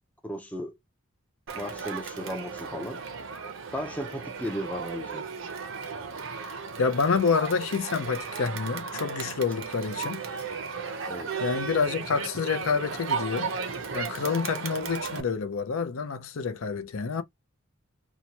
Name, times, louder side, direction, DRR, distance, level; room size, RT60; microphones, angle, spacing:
voice 1, 0.2-0.8 1.5-3.0 3.7-5.2 10.0-10.1 11.1-11.3, equal, 5° left, 0.4 m, -35 dB
Crowd, 1.5-15.2, right 5 dB, 60° right, 0.6 m, -35 dB
voice 2, 6.8-10.2 11.4-13.5 13.9-17.2, left 5 dB, 75° left, 0.5 m, -28 dB
2.8 x 2.2 x 2.8 m
head